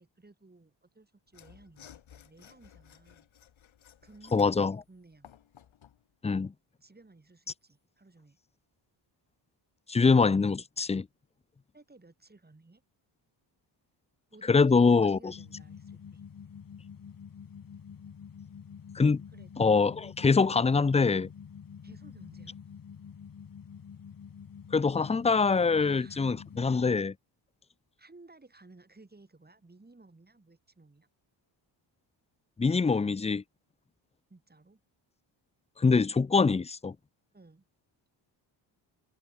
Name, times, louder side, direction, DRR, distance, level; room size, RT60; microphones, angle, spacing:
voice 1, 0.0-3.3 4.0-5.4 6.8-8.4 11.7-12.8 14.3-16.2 19.3-19.7 21.8-22.6 25.8-26.3 28.0-31.1 34.3-34.8 37.3-37.6, right 2 dB, 20° right, 6.6 m, -57 dB
Mechanisms / Sawing, 1.3-6.0, left 10 dB, 70° left, 6.1 m, -56 dB
voice 2, 4.3-4.8 6.2-6.5 9.9-11.1 14.5-15.3 18.9-19.2 19.6-21.3 24.7-27.1 32.6-33.4 35.8-36.9, left 4 dB, 15° left, 0.5 m, -24 dB
sound 1, 15.3-27.0, left 7 dB, 45° left, 2.0 m, -47 dB
cardioid pair, 80°, 48 cm